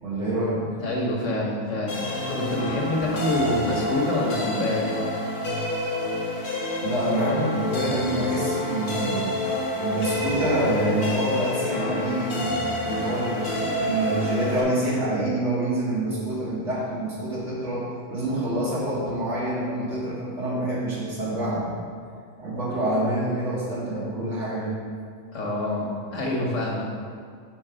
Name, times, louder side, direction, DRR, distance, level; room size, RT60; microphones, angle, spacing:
voice 1, 0.0-0.7 6.8-9.3 9.8-21.7 22.4-24.8, right 1 dB, 70° right, -8 dB, 2.1 m, -26 dB
voice 2, 0.8-2.0 2.3-4.9 25.3-26.9, left 2 dB, 85° left, -2 dB, 1.5 m, -26 dB
sound 1, 1.9-14.6, left 1 dB, 50° left, 1.0 m, -28 dB
5.3 x 4.6 x 5.0 m, 2.1 s
omnidirectional pair, 1.3 m